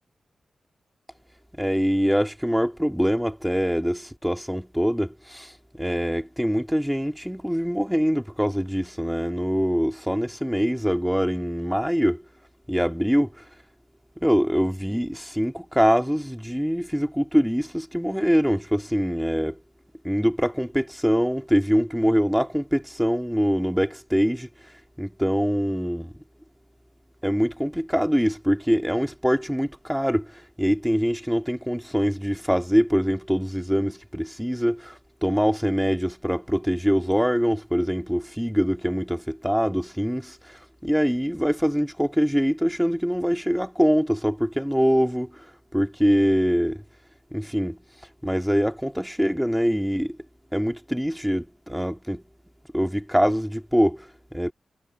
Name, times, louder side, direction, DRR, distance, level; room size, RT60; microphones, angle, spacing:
voice 1, 1.6-12.2 12.7-13.3 14.2-19.6 20.0-24.5 25.0-26.1 27.2-45.3 45.7-46.8 47.3-47.8 48.2-50.2 50.5-52.2 52.7-54.5, equal, ahead, 2.7 m, -24 dB
wide cardioid pair, 90°, 0 cm